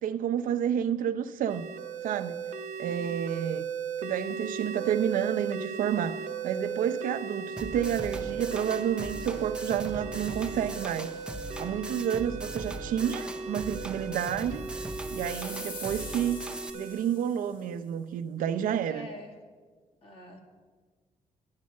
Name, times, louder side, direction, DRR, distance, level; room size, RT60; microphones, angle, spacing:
voice 1, 0.0-1.6 2.0-2.4 2.8-3.6 4.0-11.1 11.6-14.6 15.1-16.4 16.7-19.1, right 9 dB, 85° right, 10 dB, 0.7 m, -30 dB
sound 1, 1.5-17.0, right 6 dB, 60° right, 0.8 m, -37 dB
voice 2, 2.8-3.2 18.8-19.3 20.0-20.4, left 1 dB, 45° left, 2 dB, 1.8 m, -46 dB
sound 2, 7.6-16.7, right 2 dB, 5° right, 0.5 m, -40 dB
sound 3, 14.4-17.6, left 3 dB, 85° left, 2.2 m, -45 dB
10.5 x 10.5 x 6.4 m, 1.5 s
cardioid pair, 145°, 14 cm